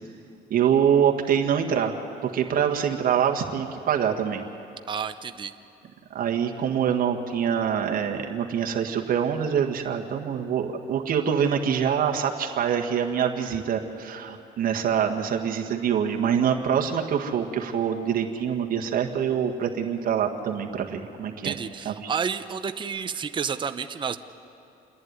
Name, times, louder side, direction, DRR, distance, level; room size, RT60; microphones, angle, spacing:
voice 1, 0.5-1.9 2.2-4.4 6.1-21.6 21.9-22.1, right 8 dB, 60° right, 2 dB, 1.7 m, -25 dB
voice 2, 4.9-5.5 21.4-24.2, right 6 dB, 30° right, 9 dB, 0.7 m, -30 dB
28.0 x 11.0 x 9.5 m, 2.8 s
cardioid pair, 110°, 17 cm